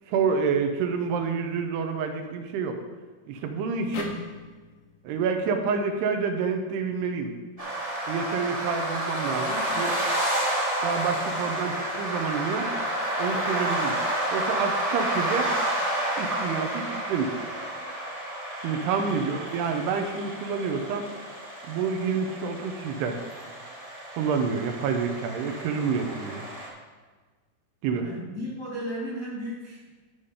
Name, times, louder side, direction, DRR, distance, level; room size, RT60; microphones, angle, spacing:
voice 1, 0.1-2.8 3.3-4.1 5.0-7.3 8.1-10.0 10.8-12.7 13.2-14.0 14.3-15.5 16.2-17.4 18.6-21.1 21.7-23.2 24.2-26.5 27.8-28.1, right 5 dB, 80° right, 5 dB, 2.8 m, -28 dB
sound 1, 3.9-7.2, left 4 dB, 70° left, 1.9 m, -43 dB
sound 2, 7.6-26.7, right 1 dB, 20° right, 0.9 m, -30 dB
voice 2, 18.9-19.2 28.0-29.9, equal, 35° left, -6 dB, 1.4 m, -35 dB
12.5 x 5.7 x 5.0 m, 1.4 s
omnidirectional pair, 4.9 m